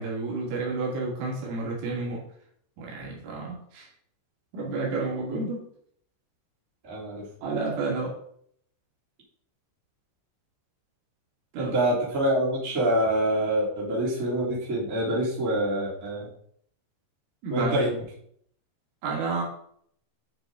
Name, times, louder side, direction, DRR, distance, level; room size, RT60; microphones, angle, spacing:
voice 1, 0.0-2.3 2.8-3.9 4.5-5.7 7.4-8.2 11.5-11.8 17.4-17.9 19.0-19.4, right 3 dB, 80° right, -3 dB, 4.9 m, -30 dB
voice 2, 6.9-7.2 11.5-16.3 17.5-17.9, right 1 dB, 20° right, -7 dB, 3.0 m, -26 dB
10.0 x 6.2 x 3.9 m, 0.65 s
omnidirectional pair, 5.6 m